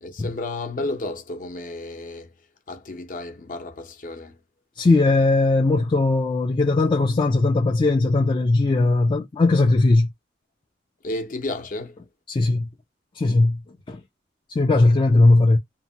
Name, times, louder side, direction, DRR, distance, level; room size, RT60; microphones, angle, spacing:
voice 1, 0.0-2.3 2.7-4.3 11.0-12.0, left 2 dB, 45° left, 0.7 m, -32 dB
voice 2, 4.8-10.1 12.3-12.7 13.2-13.6 13.9-14.0 14.6-15.6, left 2 dB, 25° left, 0.3 m, -18 dB
2.8 x 2.1 x 2.7 m
head